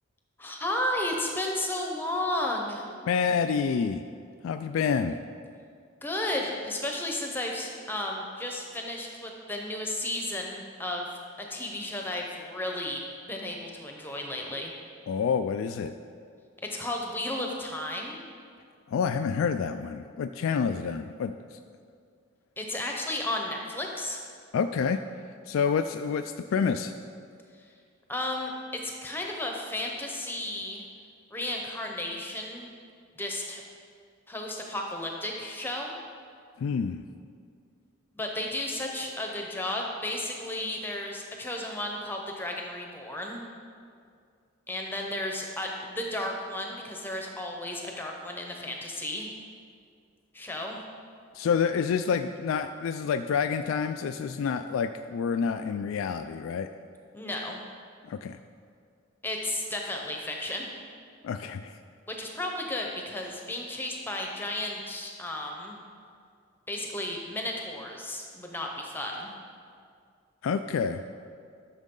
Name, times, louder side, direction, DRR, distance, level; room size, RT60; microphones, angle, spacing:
voice 1, 0.4-2.9 6.0-11.1 11.4-13.0 13.3-14.7 16.6-18.2 22.6-24.2 27.6-27.7 28.1-30.8 31.3-32.7 33.2-33.6 34.3-35.9 38.1-43.4 44.7-49.3 50.3-50.8 57.1-57.6 59.2-60.7 62.1-65.8 66.7-69.3, left 1 dB, 10° left, 1 dB, 0.8 m, -33 dB
voice 2, 3.1-4.0 4.4-5.2 15.1-15.9 18.9-21.6 24.5-25.0 25.5-26.9 36.6-37.0 51.3-56.7 58.1-58.4 61.2-61.8 70.4-71.0, left 6 dB, 80° left, 8 dB, 0.3 m, -28 dB
12.5 x 6.3 x 3.8 m, 2.2 s
head